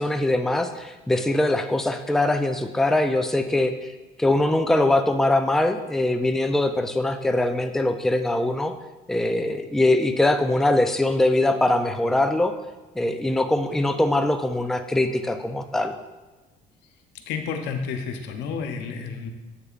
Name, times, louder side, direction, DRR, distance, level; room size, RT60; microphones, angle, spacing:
voice 1, 0.0-3.9 4.2-8.7 9.1-12.5 13.0-15.9, left 1 dB, ahead, 6 dB, 0.4 m, -22 dB
voice 2, 17.3-19.3, left 5 dB, 85° left, 5 dB, 0.7 m, -30 dB
8.0 x 6.7 x 2.5 m, 1.2 s
cardioid pair, 110°, 17 cm